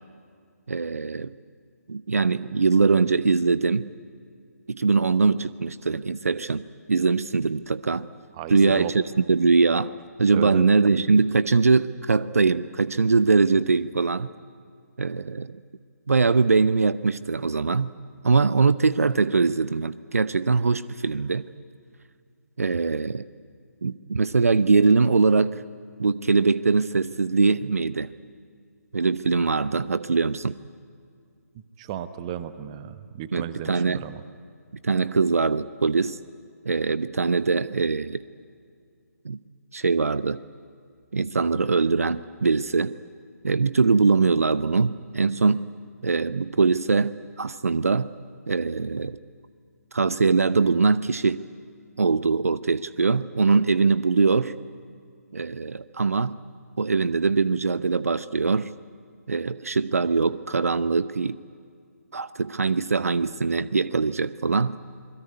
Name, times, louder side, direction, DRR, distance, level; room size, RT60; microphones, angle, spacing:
voice 1, 0.7-1.3 1.9-3.9 4.7-6.6 6.9-8.1 8.5-9.9 10.2-14.3 15.0-15.6 16.1-17.9 18.2-21.5 22.6-23.2 23.8-25.6 26.0-28.1 28.9-30.6 33.3-34.0 34.8-36.2 36.7-38.2 39.2-39.4 39.7-40.4 41.1-42.9 43.4-45.6 46.0-48.1 48.5-49.2 49.9-51.4 52.0-54.5 55.3-56.4 56.8-58.7 59.3-61.4 62.1-64.8, right 4 dB, 60° right, 16 dB, 0.6 m, -22 dB
voice 2, 8.3-8.9 10.3-10.7 31.8-34.2, right 10 dB, 20° right, 13 dB, 1.0 m, -34 dB
27.0 x 21.0 x 9.5 m, 2.3 s
figure-of-eight pair, 145°, 9 cm